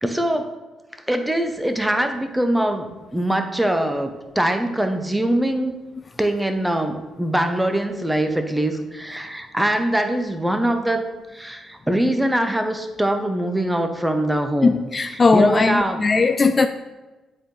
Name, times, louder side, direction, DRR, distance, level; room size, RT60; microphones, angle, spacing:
voice 1, 0.0-0.5 1.1-5.7 6.2-11.1 11.3-14.8 15.1-16.0, right 1 dB, 10° right, 6 dB, 0.8 m, -22 dB
voice 2, 14.6-16.7, left 4 dB, 35° left, 8 dB, 0.3 m, -18 dB
8.1 x 4.3 x 3.2 m, 1.1 s
cardioid pair, 75°, 0 cm